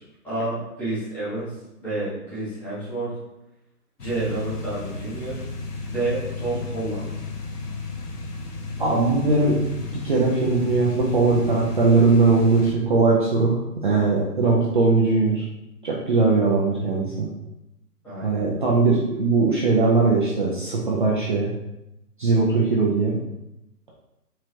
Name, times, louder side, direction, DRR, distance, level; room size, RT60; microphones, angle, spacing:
voice 1, 0.0-3.2 4.0-5.4 5.9-7.1 16.2-16.3 18.0-18.4, right 2 dB, 5° left, -11 dB, 1.0 m, -30 dB
sound 1, 4.0-12.7, left 4 dB, 75° left, 1.0 m, -33 dB
voice 2, 8.8-9.6 9.9-15.4 15.8-17.3 18.2-21.5 22.2-23.1, right 3 dB, 35° right, -4 dB, 0.5 m, -20 dB
4.5 x 3.8 x 3.1 m, 0.91 s
hypercardioid pair, 145°, 47 cm